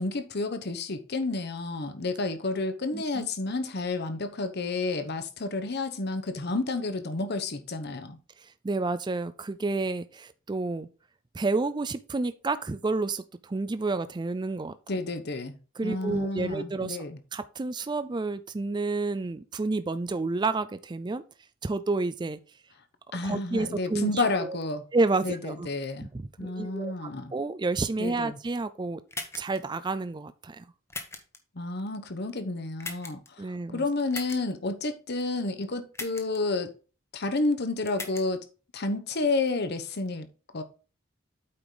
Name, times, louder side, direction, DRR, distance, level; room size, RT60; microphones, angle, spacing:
voice 1, 0.0-8.2 14.9-15.6 15.8-17.2 23.1-24.8 25.2-26.1 26.4-27.3 28.0-28.4 31.5-33.2 33.7-36.7 37.1-38.4 38.7-40.3 40.5-40.6, left 3 dB, 55° left, 1.0 m, -30 dB
voice 2, 2.9-3.3 8.4-10.9 11.3-14.8 15.8-17.0 17.3-21.2 21.6-22.4 23.2-24.6 24.9-25.7 26.0-29.0 29.4-30.7 33.4-33.9, right 3 dB, 20° right, 0.4 m, -30 dB
sound 1, 29.1-29.6 30.9-31.4 32.8-33.3 34.1-34.4 35.9-36.4 37.9-38.2, left 3 dB, 15° left, 1.0 m, -38 dB
8.6 x 5.0 x 3.9 m
head